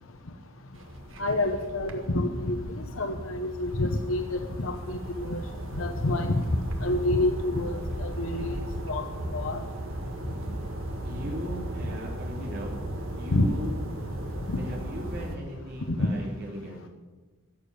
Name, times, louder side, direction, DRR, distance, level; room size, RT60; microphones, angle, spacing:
sound 1, 0.7-15.4, right 1 dB, 75° right, 1.7 m, -36 dB
voice 1, 1.2-2.6 3.0-5.4 5.8-6.4 6.8-9.0 9.3-9.6 13.3-13.5 14.5-14.6, left 2 dB, 85° left, 6 dB, 1.0 m, -28 dB
voice 2, 11.0-12.7 13.2-13.8 14.5-16.9, equal, 50° right, -3 dB, 3.7 m, -37 dB
15.5 x 7.2 x 9.6 m, 1.3 s
head